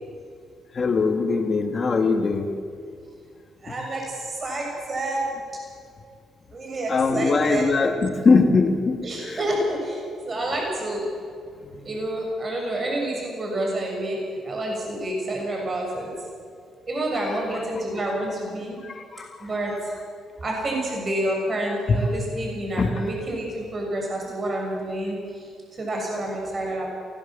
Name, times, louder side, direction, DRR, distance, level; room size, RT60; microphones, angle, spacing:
voice 1, 0.7-2.5 6.9-9.4 17.2-17.3 18.9-19.3 21.9-22.0 22.8-22.9, left 4 dB, 40° left, 3 dB, 2.9 m, -21 dB
voice 2, 3.6-5.3 6.5-7.6 9.0-11.0 11.8-14.2 14.4-16.1 16.9-18.8 19.4-19.7 20.4-25.4 25.8-26.9, right 1 dB, 40° right, 0 dB, 6.9 m, -28 dB
23.5 x 18.0 x 7.5 m, 2.2 s
cardioid pair, 90°, 0 cm